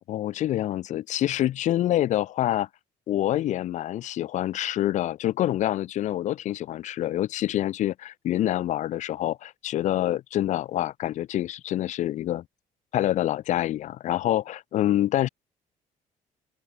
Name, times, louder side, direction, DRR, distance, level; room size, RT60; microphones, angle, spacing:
voice 1, 0.1-2.7 3.1-12.4 12.9-15.3, left 13 dB, 55° left, 3.0 m, -26 dB
open air
cardioid pair, 175°, 15 cm